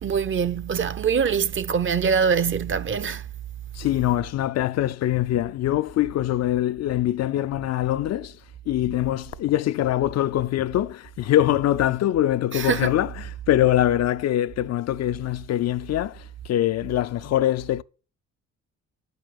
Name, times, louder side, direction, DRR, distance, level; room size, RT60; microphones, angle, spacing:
voice 1, 0.0-3.2 12.5-12.9, right 6 dB, 40° right, 0.7 m, -23 dB
voice 2, 3.7-8.4 8.7-17.8, left 13 dB, 60° left, 0.4 m, -23 dB
11.0 x 5.3 x 7.6 m
cardioid pair, 90°, 30 cm